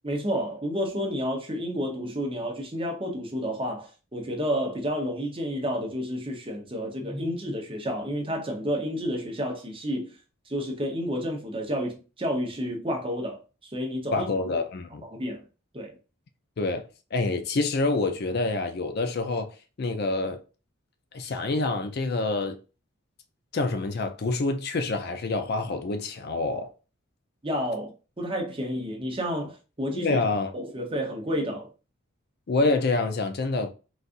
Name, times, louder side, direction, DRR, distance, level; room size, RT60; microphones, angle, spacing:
voice 1, 0.0-10.2 10.5-14.3 15.0-15.4 15.7-15.9 27.4-30.2 30.5-31.7, equal, 25° right, 0.8 m, -30 dB
voice 2, 14.1-15.1 16.6-16.9 17.1-20.4 21.1-22.6 23.5-26.7 30.0-30.5 32.5-33.7, left 3 dB, 45° left, 0.4 m, -27 dB
3.9 x 2.4 x 2.5 m
head